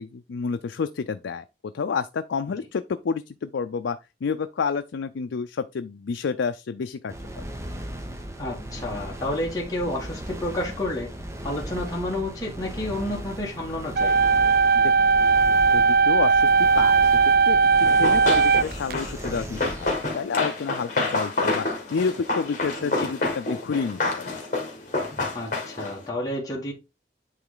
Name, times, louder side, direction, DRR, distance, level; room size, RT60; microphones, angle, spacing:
voice 1, 0.0-1.4 1.7-7.1 14.7-15.1 15.7-17.1 17.5-17.6 18.0-24.4, left 5 dB, 90° left, 0.4 m, -29 dB
sound 1, 7.1-20.1, right 1 dB, 15° right, 0.8 m, -37 dB
voice 2, 8.4-11.1 11.4-14.2 22.8-23.1 25.3-26.7, left 1 dB, 20° left, 1.5 m, -30 dB
sound 2, 14.0-18.9, right 5 dB, 55° right, 0.3 m, -18 dB
Run, 17.8-26.0, left 2 dB, 45° left, 1.8 m, -28 dB
9.0 x 3.2 x 3.8 m
head